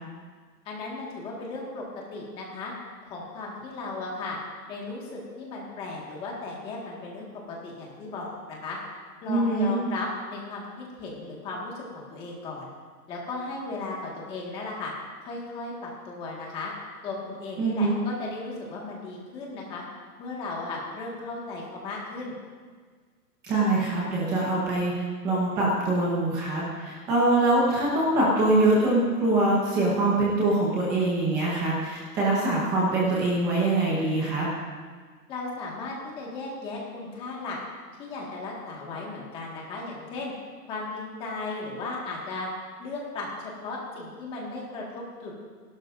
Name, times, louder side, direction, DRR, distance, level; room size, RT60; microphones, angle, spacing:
voice 1, 0.6-1.8 2.1-2.7 3.0-4.4 4.7-8.8 9.2-12.7 13.1-14.9 15.2-16.7 17.0-19.8 20.2-22.3 35.3-37.6 38.0-40.3 40.6-42.5 42.8-43.3 43.6-45.3, left 3 dB, 10° left, -3 dB, 1.7 m, -36 dB
voice 2, 9.3-9.8 17.6-18.0 23.4-34.5, right 2 dB, 5° right, -5 dB, 1.0 m, -24 dB
29.0 x 12.0 x 2.6 m, 1.6 s
hypercardioid pair, 170°, 49 cm